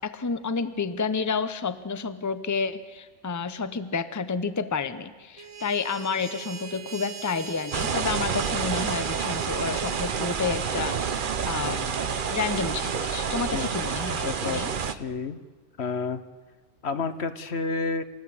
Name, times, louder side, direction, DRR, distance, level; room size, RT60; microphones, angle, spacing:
voice 1, 0.0-12.0 12.3-14.7, left 5 dB, 20° left, 12 dB, 0.8 m, -30 dB
sound 1, 5.4-10.1, right 7 dB, 75° right, 1.6 m, -41 dB
sound 2, 7.7-15.0, right 6 dB, 50° right, 1.0 m, -28 dB
voice 2, 14.2-15.4 15.8-16.2 16.8-18.0, left 4 dB, 70° left, 11 dB, 1.4 m, -30 dB
28.0 x 14.0 x 8.6 m, 1.4 s
omnidirectional pair, 1.2 m